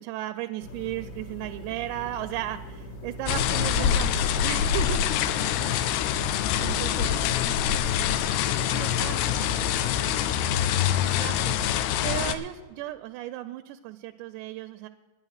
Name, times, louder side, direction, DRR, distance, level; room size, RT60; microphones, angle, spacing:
voice 1, 0.0-5.0 6.6-7.1 8.7-9.2 11.0-14.9, right 14 dB, 85° right, 9 dB, 2.7 m, -35 dB
sound 1, 0.6-9.4, equal, 70° left, 2.0 m, -41 dB
Autumn rain through drain pipe, 3.3-12.3, left 9 dB, 90° left, 2.2 m, -25 dB
voice 2, 3.4-3.9 5.3-5.9 6.6-7.7 8.9-10.5, equal, 35° left, -2 dB, 0.9 m, -45 dB
11.5 x 9.8 x 6.4 m, 1.3 s
omnidirectional pair, 5.0 m